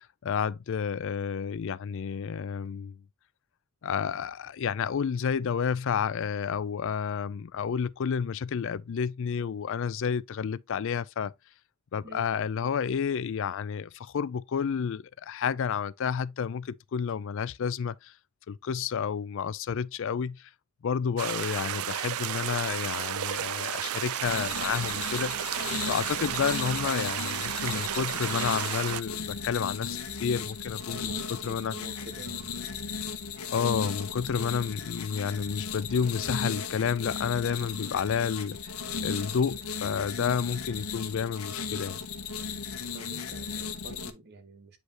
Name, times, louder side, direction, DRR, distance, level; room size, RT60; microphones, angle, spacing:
voice 1, 0.0-3.0 3.8-11.3 11.9-18.1 18.5-20.5 20.8-31.7 33.5-38.7 39.0-42.0, left 7 dB, 60° left, 0.4 m, -30 dB
sound 1, 21.2-29.0, right 10 dB, 80° right, 0.5 m, -32 dB
sound 2, 24.2-44.1, left 6 dB, 90° left, 0.9 m, -36 dB
voice 2, 30.9-32.6 32.9-33.1 42.9-44.8, right 1 dB, 50° right, 1.2 m, -48 dB
7.9 x 5.1 x 2.8 m
head